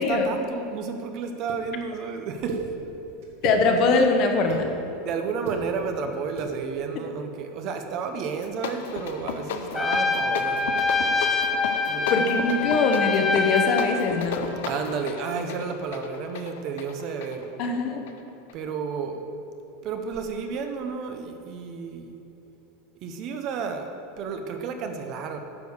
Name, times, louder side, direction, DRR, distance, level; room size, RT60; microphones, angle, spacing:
voice 1, 0.0-2.7 5.0-10.7 11.9-12.2 12.6-12.8 14.6-17.6 18.5-19.3 19.8-22.1 22.9-25.4, right 5 dB, 35° right, 6 dB, 0.6 m, -32 dB
sound 1, 1.5-1.6 2.5-2.6 3.2-3.6 4.2-4.6 5.3-5.6 6.3-6.5, right 6 dB, 65° right, 1.6 m, -32 dB
voice 2, 3.4-4.7 12.1-14.5 17.6-18.0, left 4 dB, 35° left, 4 dB, 0.8 m, -22 dB
sound 2, 8.3-18.6, left 7 dB, 80° left, 0.6 m, -35 dB
Trumpet, 9.7-14.0, left 4 dB, 10° left, 0.5 m, -25 dB
9.6 x 5.2 x 6.4 m, 3.0 s
supercardioid pair, 170°, 0 cm